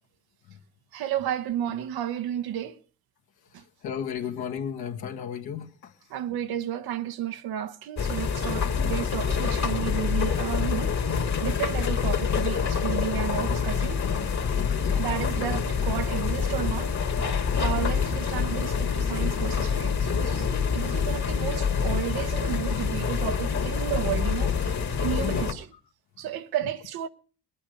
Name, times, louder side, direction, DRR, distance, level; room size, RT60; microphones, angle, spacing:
voice 1, 0.9-2.8 3.5-3.6 6.1-14.0 14.9-16.9 17.2-25.7 26.2-27.1, right 11 dB, 60° right, 0.9 m, -32 dB
voice 2, 3.8-5.9 8.8-9.0 14.6-14.9 25.2-25.5, left 8 dB, 65° left, 1.7 m, -34 dB
sound 1, 8.0-25.5, left 6 dB, 40° left, 2.0 m, -26 dB
21.0 x 8.8 x 5.1 m
hypercardioid pair, 55°, 41 cm